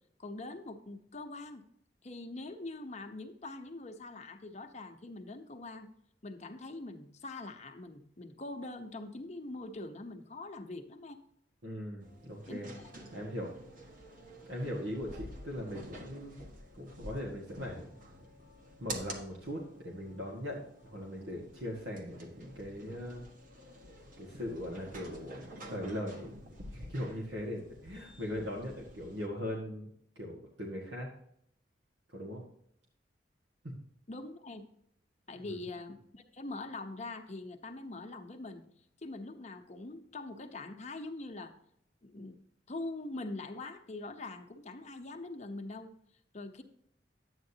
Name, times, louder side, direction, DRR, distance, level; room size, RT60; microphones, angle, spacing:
voice 1, 0.2-1.6 2.0-5.9 6.2-11.2 12.5-12.9 34.1-34.6 35.3-38.6 39.0-41.5 42.0-42.4 42.7-45.9 46.3-46.6, left 2 dB, 40° left, 5 dB, 1.0 m, -43 dB
voice 2, 11.6-12.7 13.1-13.5 14.4-16.3 16.7-17.9 18.8-23.2 24.2-26.4 26.7-29.9 30.1-31.1 32.1-32.4 33.6-33.7 35.4-35.6, equal, 80° right, -2 dB, 1.7 m, -40 dB
sound 1, 12.0-29.3, right 1 dB, 50° right, 1.5 m, -49 dB
11.5 x 8.9 x 2.8 m, 0.70 s
head